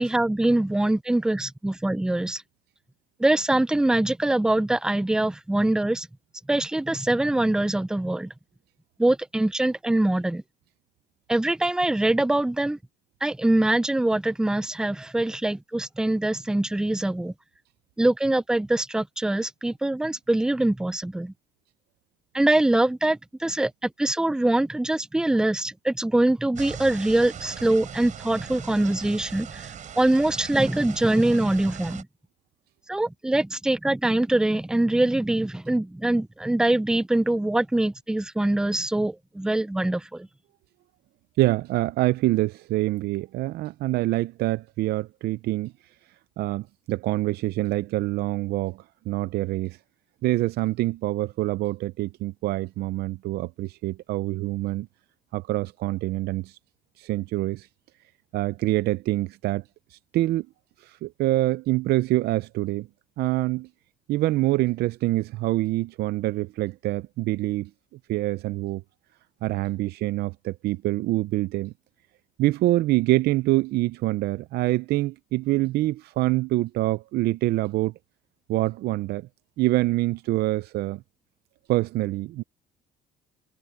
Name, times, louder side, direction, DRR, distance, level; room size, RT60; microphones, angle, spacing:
voice 1, 0.0-2.4 3.2-6.1 6.5-8.3 9.0-10.4 11.3-12.8 13.2-17.3 18.0-21.3 22.3-29.6 30.0-32.1 32.9-40.3, right 1 dB, 5° right, 0.4 m, -23 dB
sound 1, 26.6-32.0, right 8 dB, 50° right, 3.9 m, -40 dB
voice 2, 41.4-45.7 46.4-48.8 49.1-49.8 50.2-54.9 55.3-56.5 57.0-57.7 58.3-59.6 59.9-60.5 60.8-62.9 63.2-63.7 64.1-67.7 68.1-68.8 69.4-71.7 72.4-77.9 78.5-79.2 79.6-81.0 81.7-82.4, right 17 dB, 70° right, 0.5 m, -25 dB
cardioid pair, 110°, 17 cm